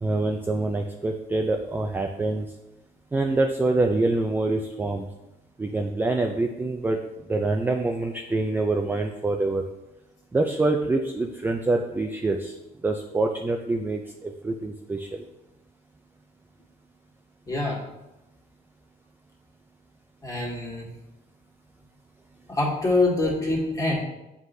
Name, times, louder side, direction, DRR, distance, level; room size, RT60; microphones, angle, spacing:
voice 1, 0.0-2.5 3.1-5.1 5.6-7.0 7.3-9.6 10.3-12.5 12.8-15.2, right 2 dB, 10° right, 4 dB, 0.4 m, -25 dB
voice 2, 17.5-17.8 20.2-20.9 22.5-23.9, left 2 dB, 20° left, -3 dB, 1.8 m, -25 dB
7.6 x 4.7 x 2.7 m, 0.96 s
cardioid pair, 110°, 17 cm